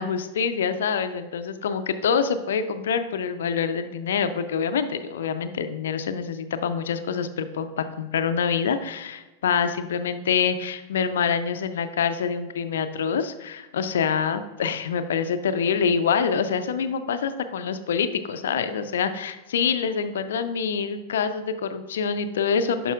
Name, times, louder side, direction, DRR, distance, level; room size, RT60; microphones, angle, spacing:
voice 1, 0.0-22.9, left 6 dB, 60° left, 10 dB, 0.5 m, -26 dB
10.5 x 5.4 x 2.4 m, 1.2 s
figure-of-eight pair, 90°, 0 cm